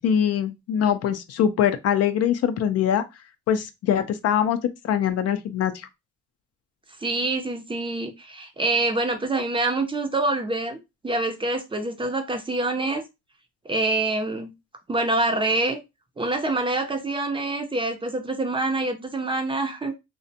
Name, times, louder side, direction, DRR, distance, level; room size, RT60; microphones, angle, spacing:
voice 1, 0.0-3.0 3.5-5.9, left 9 dB, 55° left, 0.4 m, -23 dB
voice 2, 7.0-13.0 13.6-14.5 14.9-15.8 16.2-19.9, right 2 dB, 15° right, 0.5 m, -26 dB
2.4 x 2.1 x 2.6 m
cardioid pair, 95°, 29 cm